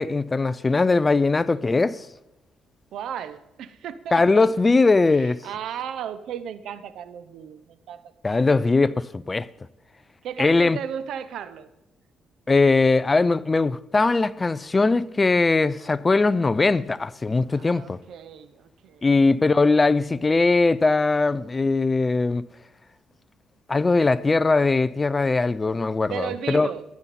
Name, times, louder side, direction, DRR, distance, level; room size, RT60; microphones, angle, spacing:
voice 1, 0.0-2.1 4.1-5.4 8.2-9.5 10.4-10.8 12.5-18.0 19.0-22.4 23.7-26.7, left 3 dB, 25° left, 0.5 m, -20 dB
voice 2, 2.9-4.5 5.2-8.1 10.2-11.7 17.5-19.0 26.1-26.8, right 9 dB, 75° right, 0.8 m, -35 dB
15.5 x 10.5 x 4.3 m
cardioid pair, 90°, 0 cm